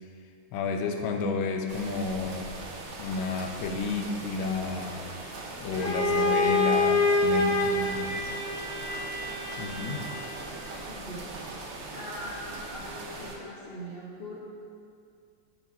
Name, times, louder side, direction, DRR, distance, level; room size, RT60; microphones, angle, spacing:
voice 1, 0.5-2.5 3.0-5.1 5.6-8.3 9.6-10.1, left 4 dB, 85° left, 4 dB, 1.4 m, -31 dB
sound 1, 1.7-13.4, right 2 dB, 85° right, 0.6 m, -40 dB
Bowed string instrument, 5.7-10.5, left 2 dB, 10° right, 0.8 m, -27 dB
voice 2, 10.9-11.2 11.9-14.4, equal, 40° left, -7 dB, 0.9 m, -41 dB
8.9 x 6.1 x 2.4 m, 2.3 s
omnidirectional pair, 2.1 m